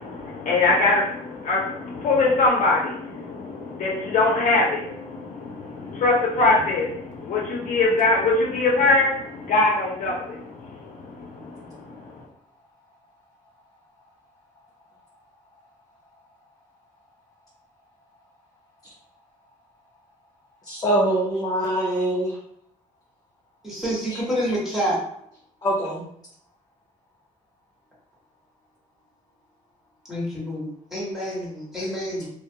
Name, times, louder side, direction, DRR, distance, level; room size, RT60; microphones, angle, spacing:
voice 1, 0.0-12.0, left 3 dB, 65° left, -3 dB, 0.8 m, -23 dB
voice 2, 20.6-22.4 24.1-24.2 25.6-26.0, right 1 dB, 30° left, -5 dB, 0.6 m, -23 dB
voice 3, 23.6-25.0 30.1-32.3, equal, ahead, -6 dB, 1.3 m, -28 dB
2.3 x 2.2 x 2.7 m, 0.70 s
cardioid pair, 100°, 14 cm